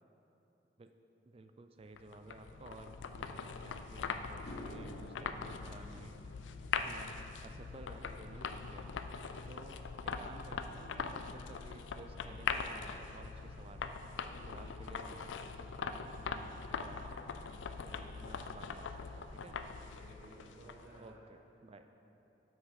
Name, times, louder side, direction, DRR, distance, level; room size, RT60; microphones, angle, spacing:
voice 1, 1.2-6.2 6.6-8.9 9.5-14.0 14.5-17.3 17.8-19.6 21.0-21.9, right 2 dB, 30° right, 8 dB, 0.4 m, -54 dB
sound 1, 2.0-21.0, left 5 dB, 85° left, 0.4 m, -42 dB
sound 2, 4.4-12.8 13.1-13.5 17.1-17.2 18.8-18.9 19.2-19.4 19.6-20.2, equal, 60° left, 0.9 m, -56 dB
Aircraft, 12.0-21.0, equal, 35° left, 1.2 m, -64 dB
voice 2, 14.2-14.7 17.9-18.3 19.6-21.2 21.8-21.9, right 1 dB, 85° right, -9 dB, 1.5 m, -58 dB
8.0 x 6.2 x 5.8 m, 2.9 s
head